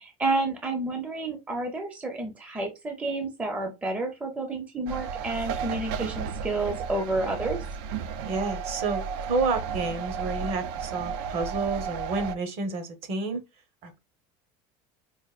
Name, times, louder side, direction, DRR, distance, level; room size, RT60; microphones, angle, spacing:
voice 1, 0.0-7.6, right 2 dB, 10° right, 0.5 m, -30 dB
sound 1, 4.9-12.4, right 6 dB, 70° right, 0.4 m, -33 dB
voice 2, 8.2-13.4 13.8-14.0, right 3 dB, 50° right, 0.9 m, -30 dB
4.6 x 2.6 x 2.3 m
cardioid pair, 170°, 13 cm